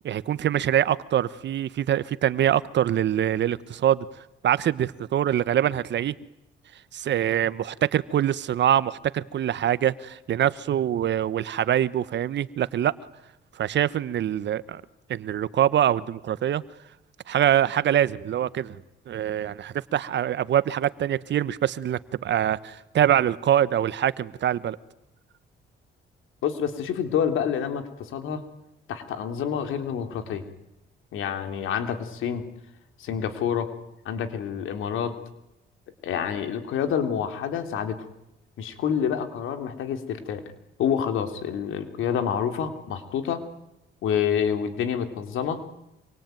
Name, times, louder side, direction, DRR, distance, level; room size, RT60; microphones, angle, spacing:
voice 1, 0.0-4.1 4.4-6.1 6.9-12.9 13.6-14.8 15.1-16.6 17.3-18.8 19.1-24.8, right 10 dB, 65° right, 17 dB, 1.2 m, -24 dB
voice 2, 26.4-28.4 28.9-30.4 31.1-32.4 33.0-33.7 34.0-35.1 36.0-38.0 38.6-40.4 40.8-43.4 44.0-45.6, left 8 dB, 85° left, 8 dB, 3.4 m, -28 dB
26.5 x 24.0 x 9.3 m, 0.88 s
cardioid pair, 90°, 20 cm